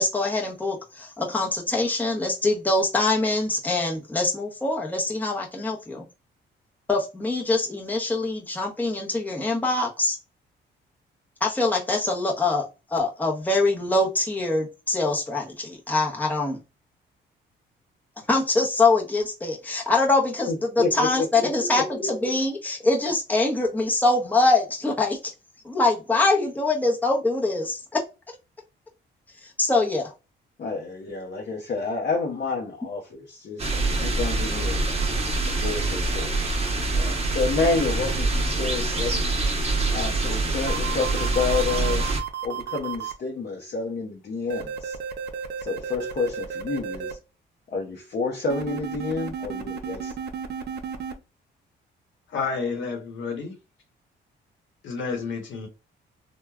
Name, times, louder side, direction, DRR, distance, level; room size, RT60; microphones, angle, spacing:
voice 1, 0.0-6.0 6.9-10.2 11.4-16.6 18.3-20.5 20.8-25.3 25.6-28.0 29.4-30.1, left 2 dB, 10° left, 0.8 m, -24 dB
voice 2, 20.5-22.4 30.6-34.9 35.5-36.6 36.9-39.2 39.9-45.0 45.6-47.2 47.7-50.1, left 4 dB, 50° left, 0.7 m, -29 dB
sound 1, 33.6-42.2, right 2 dB, 30° right, 0.9 m, -25 dB
sound 2, 40.7-43.1 44.5-47.1 48.5-51.1, right 7 dB, 55° right, 0.6 m, -33 dB
voice 3, 52.3-53.5 54.8-55.7, left 5 dB, 75° left, 1.0 m, -30 dB
3.2 x 2.2 x 2.3 m
cardioid pair, 90°, 20 cm